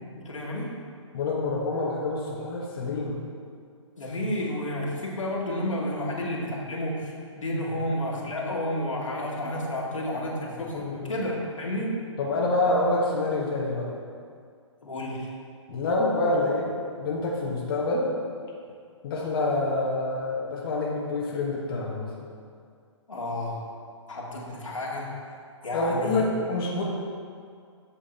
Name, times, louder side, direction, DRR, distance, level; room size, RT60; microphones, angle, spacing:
voice 1, 0.1-0.7 4.0-12.0 14.8-15.3 23.1-23.6 24.1-25.1 25.6-26.2, left 1 dB, 85° left, -4 dB, 2.1 m, -31 dB
voice 2, 1.1-3.3 10.7-11.1 12.2-13.9 15.7-16.7 17.0-18.1 19.0-22.1 25.7-26.8, left 2 dB, 45° left, -4 dB, 1.4 m, -27 dB
8.4 x 6.3 x 4.3 m, 2.2 s
hypercardioid pair, 130°, 16 cm